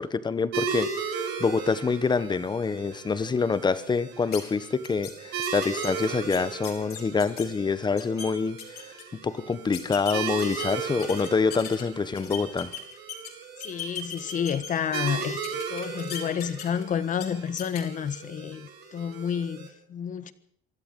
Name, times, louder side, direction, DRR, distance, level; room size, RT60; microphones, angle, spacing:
voice 1, 0.0-12.7, left 4 dB, 25° left, 1.4 m, -26 dB
sound 1, 0.5-19.7, right 6 dB, 80° right, 6.0 m, -37 dB
sound 2, 4.3-4.4 4.8-5.1 5.4-7.5 7.8-8.3 8.6-9.0 9.7-11.8 12.1-13.3 13.6-15.1 15.4-16.8 17.2-17.3 17.6-17.8, left 8 dB, 65° left, 5.3 m, -38 dB
voice 2, 13.6-15.4 15.7-20.3, left 8 dB, 50° left, 1.4 m, -30 dB
24.5 x 13.0 x 8.1 m
cardioid pair, 110°, 17 cm